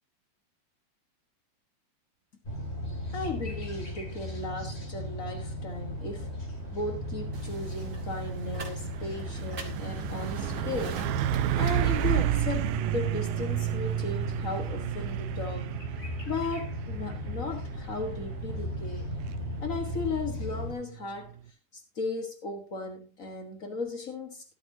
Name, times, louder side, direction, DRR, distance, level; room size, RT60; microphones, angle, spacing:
sound 1, 2.4-20.7, equal, 20° left, 2.3 m, -37 dB
voice 1, 3.1-6.3 6.7-11.1 11.6-15.7 16.3-19.1 19.6-21.4 21.7-24.5, left 3 dB, 90° left, 5 dB, 0.7 m, -36 dB
Truck, 7.2-21.5, right 13 dB, 80° right, 2.2 m, -32 dB
sound 2, 7.3-12.6, right 3 dB, 30° right, 1.6 m, -47 dB
13.0 x 12.5 x 2.8 m, 0.30 s
omnidirectional pair, 3.9 m